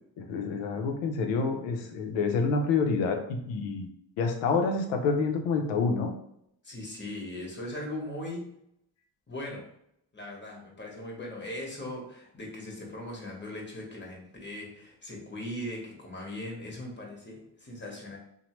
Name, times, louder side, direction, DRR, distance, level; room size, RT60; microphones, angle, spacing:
voice 1, 0.2-3.9 4.2-6.2, left 4 dB, 80° left, 4 dB, 0.7 m, -28 dB
voice 2, 6.6-8.5 9.3-9.7 10.1-18.2, left 1 dB, 25° left, -1 dB, 1.1 m, -39 dB
2.9 x 2.2 x 3.0 m, 0.75 s
supercardioid pair, 60°, 45 cm